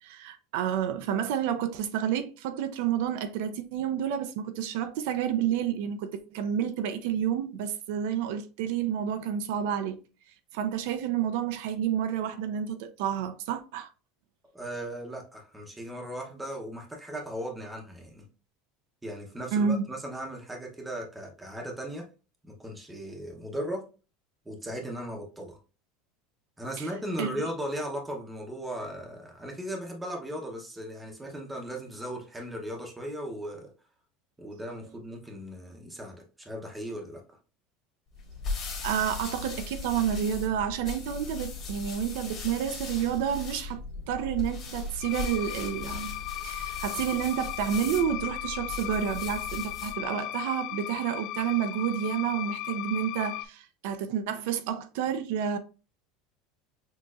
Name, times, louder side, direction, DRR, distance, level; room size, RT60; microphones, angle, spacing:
voice 1, 0.0-10.0 10.5-13.9 19.5-19.8 26.8-26.9 27.2-27.3 38.8-46.1 46.4-55.6, right 9 dB, 65° right, 0.5 m, -30 dB
voice 2, 14.5-18.2 19.0-22.1 22.4-23.8 24.4-25.6 26.6-33.7 34.4-37.2, equal, 5° right, 0.8 m, -37 dB
sound 1, 38.1-50.0, left 3 dB, 30° left, 1.6 m, -38 dB
sound 2, 45.0-53.5, left 16 dB, 45° left, 0.4 m, -37 dB
6.3 x 2.9 x 2.4 m
cardioid pair, 175°, 0 cm